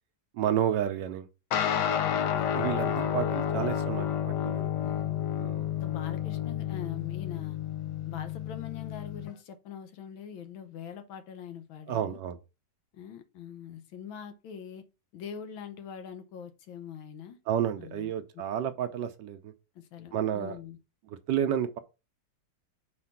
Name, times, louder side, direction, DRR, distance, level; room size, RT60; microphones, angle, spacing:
voice 1, 0.3-1.3 2.5-4.1 4.4-4.7 5.4-5.7 11.9-12.4 17.5-19.5 20.1-20.6 21.1-21.8, right 9 dB, 70° right, 1.2 m, -30 dB
sound 1, 1.5-9.3, left 9 dB, 65° left, 1.2 m, -30 dB
voice 2, 2.1-2.5 4.8-5.1 5.8-7.6 8.1-12.2 12.9-14.8 15.1-17.4 17.8-18.1 19.8-20.8, left 8 dB, 85° left, 1.6 m, -43 dB
4.8 x 4.3 x 5.8 m
omnidirectional pair, 2.1 m